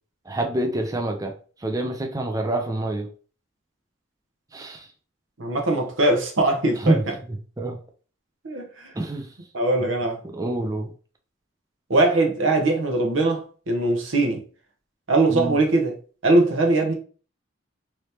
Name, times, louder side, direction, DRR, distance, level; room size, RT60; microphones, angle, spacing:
voice 1, 0.3-1.3 1.6-3.1 4.5-4.9 6.8-7.0 7.6-7.8 8.9-9.3 10.2-10.9 15.3-15.6, right 1 dB, 20° right, 0.4 m, -26 dB
voice 2, 5.4-7.0 8.4-8.9 9.5-10.2 11.9-14.4 15.1-15.9 16.2-16.9, right 2 dB, 90° right, 0.9 m, -21 dB
3.3 x 3.1 x 2.8 m
head